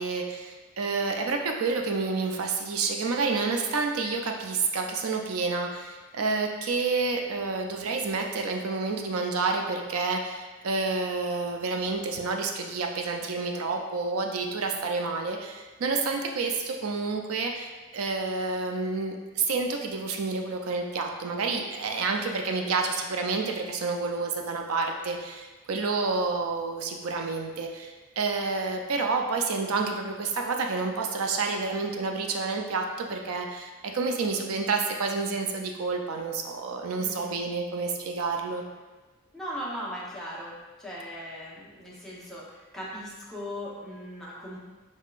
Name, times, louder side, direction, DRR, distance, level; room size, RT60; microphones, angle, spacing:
voice 1, 0.0-38.6, right 4 dB, 80° right, 3 dB, 0.5 m, -29 dB
voice 2, 22.4-22.8 37.0-37.4 39.3-44.6, equal, ahead, -7 dB, 0.9 m, -39 dB
5.3 x 3.6 x 2.4 m, 1.2 s
head